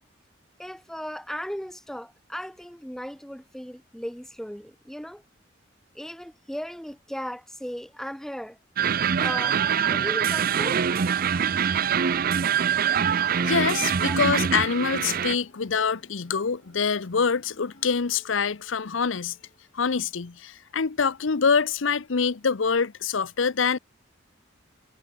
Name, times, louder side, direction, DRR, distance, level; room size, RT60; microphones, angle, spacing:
voice 1, 0.6-5.2 5.9-8.6 9.2-10.8 14.0-14.2, equal, ahead, 1.1 m, -36 dB
sound 1, 8.8-15.3, right 7 dB, 50° right, 0.5 m, -24 dB
sound 2, 11.3-19.7, left 1 dB, 45° left, 5.4 m, -58 dB
voice 2, 13.4-19.4 19.7-23.8, left 5 dB, 90° left, 0.8 m, -25 dB
head